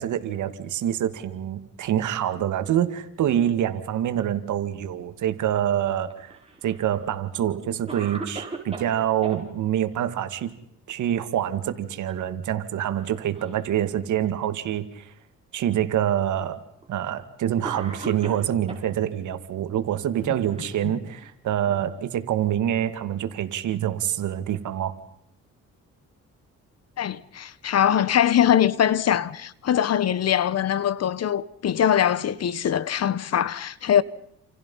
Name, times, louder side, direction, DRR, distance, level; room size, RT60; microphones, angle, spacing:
voice 1, 0.0-10.5 10.9-15.1 15.5-16.6 16.9-24.9, right 10 dB, 75° right, 2.2 m, -26 dB
Cough, 6.1-6.9 7.5-7.6 7.9-9.4 11.3-11.7 12.0-12.2 13.0-13.7 14.5-14.6 15.6-15.7 16.8-17.0 17.6-18.9 19.9-21.3, right 3 dB, 20° right, 6.7 m, -39 dB
voice 2, 27.0-34.0, left 10 dB, 55° left, 1.2 m, -22 dB
28.5 x 28.5 x 5.6 m
cardioid pair, 90°, 30 cm